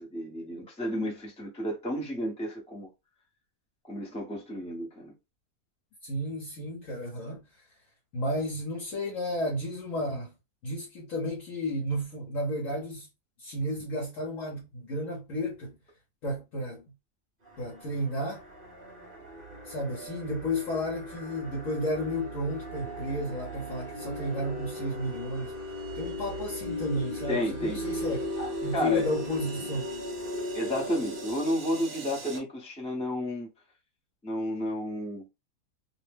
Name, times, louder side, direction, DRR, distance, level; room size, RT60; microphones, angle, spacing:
voice 1, 0.0-2.9 3.9-5.1 27.3-27.8 28.4-29.1 30.5-33.5 34.2-35.3, equal, 5° left, 0.7 m, -32 dB
voice 2, 6.0-7.4 8.1-10.3 10.6-13.1 13.4-15.8 16.2-16.9 17.6-18.4 19.7-25.5 25.9-29.9, equal, 65° left, 1.2 m, -32 dB
sound 1, 17.4-32.4, equal, 45° right, 0.9 m, -38 dB
2.7 x 2.1 x 3.3 m
omnidirectional pair, 1.6 m